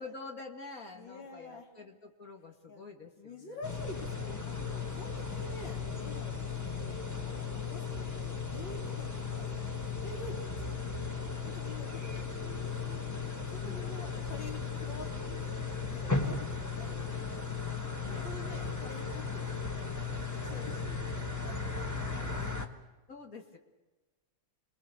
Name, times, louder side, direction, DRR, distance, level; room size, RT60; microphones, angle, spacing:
voice 1, 0.0-3.6 13.6-14.0 18.0-18.4 23.1-23.6, left 3 dB, 45° left, 3 dB, 2.7 m, -47 dB
voice 2, 0.9-1.7 2.7-2.8 3.2-10.4 10.9-13.1 13.5-15.5 15.9-17.7 18.0-19.7 20.1-22.5, left 2 dB, 75° left, 1 dB, 3.8 m, -48 dB
sound 1, 3.6-22.7, left 5 dB, 10° left, 1.3 m, -36 dB
27.5 x 21.5 x 6.9 m, 1.2 s
omnidirectional pair, 2.1 m